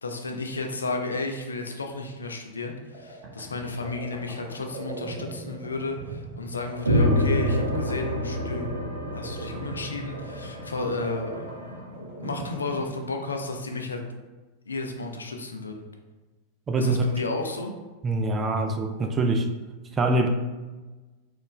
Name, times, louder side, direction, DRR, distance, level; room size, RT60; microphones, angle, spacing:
voice 1, 0.0-8.7 9.1-14.0 14.7-15.8 16.8-17.7, left 3 dB, 75° left, 4 dB, 0.4 m, -33 dB
sound 1, 2.8-13.5, right 2 dB, 45° right, 1.0 m, -40 dB
sound 2, 6.8-11.5, equal, 85° right, 0.6 m, -27 dB
voice 2, 16.7-17.0 18.0-19.5 20.0-20.3, right 2 dB, 20° right, 4 dB, 0.4 m, -24 dB
4.2 x 2.4 x 3.1 m, 1.2 s
figure-of-eight pair, 90°, 0 cm